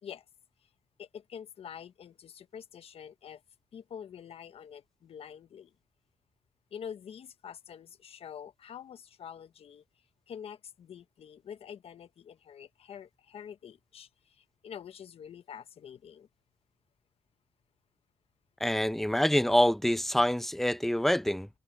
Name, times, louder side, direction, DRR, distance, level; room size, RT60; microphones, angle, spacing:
voice 1, 1.0-3.4 3.7-5.7 6.7-9.8 10.3-16.3, left 8 dB, 75° left, 1.1 m, -46 dB
voice 2, 18.6-21.5, equal, 5° left, 0.7 m, -26 dB
cardioid pair, 70°, 10 cm